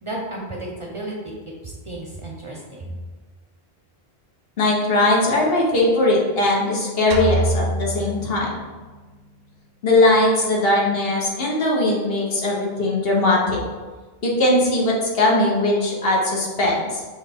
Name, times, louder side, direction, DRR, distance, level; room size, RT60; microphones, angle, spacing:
voice 1, 0.0-1.3 1.6-3.0, right 1 dB, 35° right, -2 dB, 0.6 m, -33 dB
voice 2, 4.6-8.6 9.8-13.6 14.2-17.0, left 2 dB, 70° left, -3 dB, 1.2 m, -19 dB
sound 1, 7.1-9.0, right 1 dB, 75° right, 0.8 m, -25 dB
6.1 x 2.4 x 3.5 m, 1.3 s
omnidirectional pair, 1.0 m